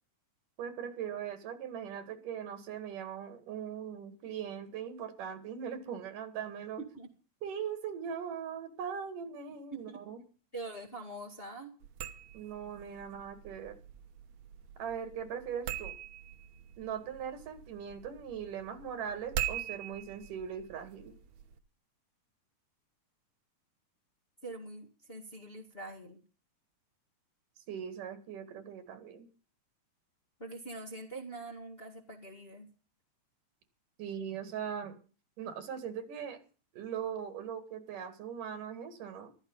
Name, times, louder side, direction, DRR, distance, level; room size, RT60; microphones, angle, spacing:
voice 1, 0.6-6.8 7.4-10.2 12.3-13.8 14.8-15.9 16.8-21.1 27.7-29.3 34.0-35.0 35.4-36.4 36.7-39.3, right 8 dB, 85° right, 10 dB, 3.7 m, -40 dB
voice 2, 6.8-7.1 9.7-10.0 10.5-11.8 24.4-26.2 30.4-32.7, right 2 dB, 25° left, 0 dB, 1.7 m, -44 dB
sound 1, 11.8-21.6, right 10 dB, 70° right, 2.3 m, -43 dB
14.5 x 13.5 x 5.5 m, 0.38 s
omnidirectional pair, 3.6 m